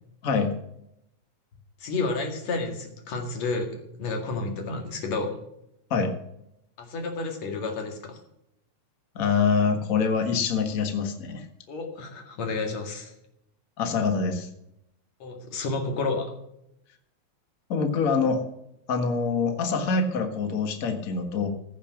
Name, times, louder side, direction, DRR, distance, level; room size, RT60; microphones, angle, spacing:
voice 1, 1.8-5.3 6.8-8.2 11.7-13.1 15.2-16.3, left 3 dB, 65° left, 4 dB, 3.2 m, -31 dB
voice 2, 9.1-11.4 13.8-14.5 17.7-18.4 18.9-21.5, left 5 dB, 35° left, 6 dB, 1.5 m, -25 dB
15.0 x 7.4 x 5.9 m, 0.78 s
omnidirectional pair, 3.3 m